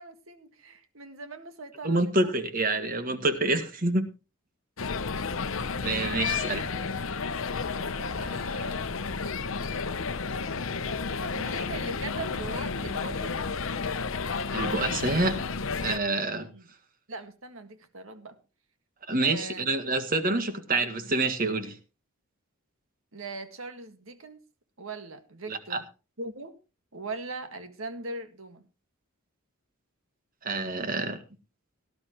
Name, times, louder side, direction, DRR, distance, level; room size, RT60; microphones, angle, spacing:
voice 1, 0.0-2.3 8.2-8.8 9.5-9.8 11.1-13.4 16.4-16.7 17.1-18.3 19.2-19.7 23.1-24.4 24.8-25.9 26.2-26.5 26.9-28.6, right 3 dB, 65° right, 1.8 m, -40 dB
voice 2, 1.8-4.1 5.8-6.7 14.5-15.4 15.8-16.5 19.1-21.8 25.5-25.8 30.4-31.2, right 2 dB, 40° right, 1.7 m, -27 dB
sound 1, 4.8-16.0, left 4 dB, 65° left, 0.8 m, -31 dB
18.5 x 12.0 x 3.0 m
head